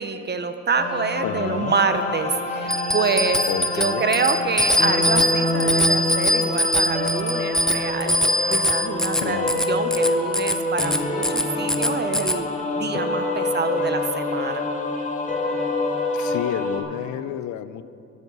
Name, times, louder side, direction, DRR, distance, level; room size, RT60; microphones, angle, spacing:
voice 1, 0.0-3.4 3.7-8.2 8.5-12.5 12.8-14.7, right 5 dB, 35° right, 9 dB, 0.8 m, -26 dB
sound 1, 0.8-16.8, left 2 dB, 25° left, 1.8 m, -26 dB
voice 2, 1.2-1.8 3.5-4.1 9.2-9.6 16.1-17.8, left 11 dB, 70° left, 14 dB, 0.5 m, -30 dB
Bicycle bell, 2.7-12.4, equal, ahead, 0.5 m, -23 dB
13.5 x 9.2 x 5.5 m, 2.6 s
cardioid pair, 90°, 30 cm